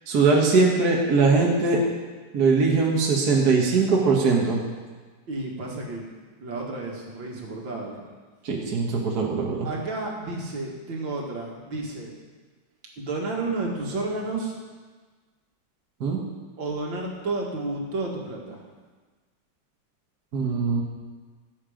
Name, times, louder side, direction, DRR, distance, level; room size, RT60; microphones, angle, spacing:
voice 1, 0.1-1.8 2.3-4.6 8.4-9.7 16.0-16.2 20.3-20.8, right 4 dB, 55° right, -1 dB, 1.9 m, -21 dB
voice 2, 5.3-6.1 6.4-8.0 9.6-12.1 13.0-14.6 16.6-18.7, right 2 dB, 80° right, -1 dB, 2.7 m, -31 dB
16.5 x 7.8 x 5.1 m, 1.4 s
omnidirectional pair, 2.0 m